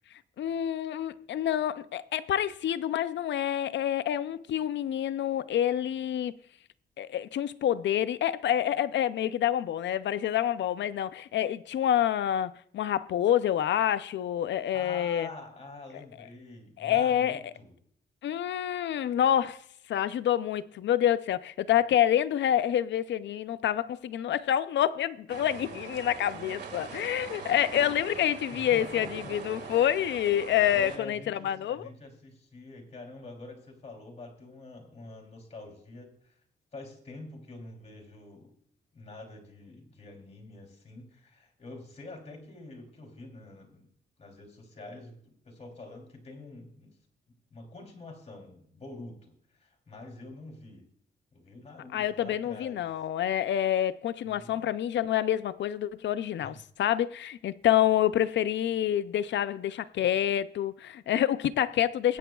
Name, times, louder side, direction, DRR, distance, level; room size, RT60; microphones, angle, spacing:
voice 1, 0.4-6.3 7.0-15.3 16.8-17.4 18.2-19.6 19.9-31.9 51.9-62.2, left 11 dB, 90° left, 0.5 m, -27 dB
voice 2, 14.7-17.7 28.5-29.3 30.7-36.3 36.7-38.5 38.9-43.9 44.2-46.9 47.3-50.8 51.3-52.8 54.2-54.6 56.4-56.5, left 2 dB, 35° left, 3.1 m, -46 dB
sound 1, 25.3-31.0, right 5 dB, 70° right, 1.8 m, -42 dB
21.0 x 8.8 x 2.3 m
wide cardioid pair, 125°, 18 cm